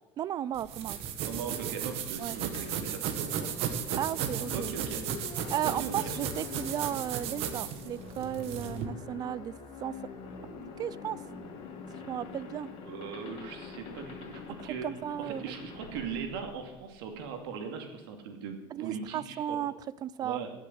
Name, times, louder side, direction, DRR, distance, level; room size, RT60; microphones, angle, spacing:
voice 1, 0.2-1.0 2.2-2.4 4.0-4.9 5.5-9.5 9.8-10.0 10.8-11.2 12.1-12.7 14.6-15.6 18.7-19.7 20.0-20.4, right 11 dB, 35° right, 20 dB, 0.4 m, -34 dB
sound 1, 0.6-8.9, right 8 dB, 55° right, 1.6 m, -35 dB
voice 2, 1.2-4.0 4.5-5.0 5.6-6.1 12.8-14.9 15.2-19.6 20.2-20.5, right 6 dB, 90° right, 4 dB, 2.6 m, -40 dB
sound 2, 2.5-17.3, left 5 dB, 45° left, 2.4 m, -45 dB
16.5 x 7.3 x 8.0 m, 1.1 s
cardioid pair, 145°, 12 cm